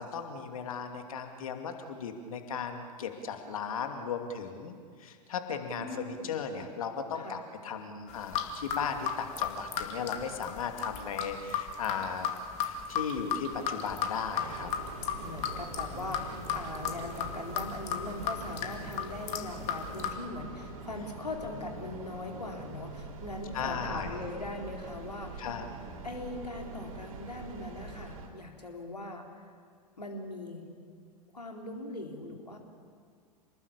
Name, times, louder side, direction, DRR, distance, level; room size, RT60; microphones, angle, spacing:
voice 1, 0.0-12.3 12.6-14.7 15.9-16.1 23.5-24.2 25.4-25.6, left 6 dB, 60° left, 6 dB, 2.5 m, -36 dB
voice 2, 5.8-6.5 7.1-7.4 15.1-25.6 26.0-29.5 30.0-30.7 31.3-32.6, left 2 dB, 80° left, 2 dB, 4.0 m, -41 dB
sound 1, 8.1-20.1, left 8 dB, 35° left, 2.5 m, -35 dB
Train, 14.4-28.3, right 3 dB, 60° right, 4.0 m, -44 dB
28.5 x 20.0 x 8.7 m, 2.1 s
figure-of-eight pair, 95°, 20 cm